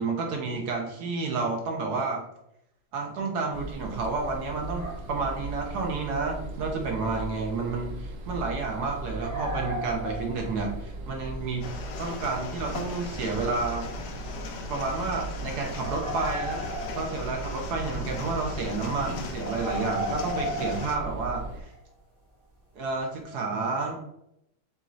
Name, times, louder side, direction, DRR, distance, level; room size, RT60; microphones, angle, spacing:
voice 1, 0.0-2.2 2.9-11.7 12.0-14.0 14.7-16.6 16.9-21.7 22.7-24.0, right 3 dB, 60° right, 1 dB, 1.3 m, -30 dB
sound 1, 3.5-21.6, right 2 dB, 85° right, 0.7 m, -38 dB
sound 2, 4.7-5.2 6.7-6.8 9.1-10.8 14.1-14.2 15.8-17.5 19.4-21.8, right 1 dB, 45° right, 1.7 m, -34 dB
sound 3, 11.6-21.0, left 4 dB, 70° left, 1.1 m, -39 dB
7.1 x 2.7 x 2.5 m, 0.80 s
omnidirectional pair, 2.1 m